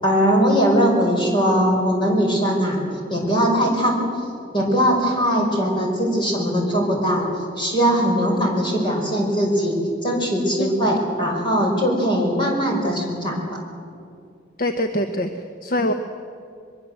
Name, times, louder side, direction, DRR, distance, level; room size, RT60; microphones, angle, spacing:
voice 1, 0.0-2.8 3.1-4.0 4.5-7.3 7.6-13.4, equal, 25° left, 0 dB, 5.5 m, -20 dB
voice 2, 10.6-10.9 14.6-15.9, equal, 45° left, 7 dB, 1.0 m, -24 dB
23.5 x 23.0 x 7.9 m, 2.4 s
head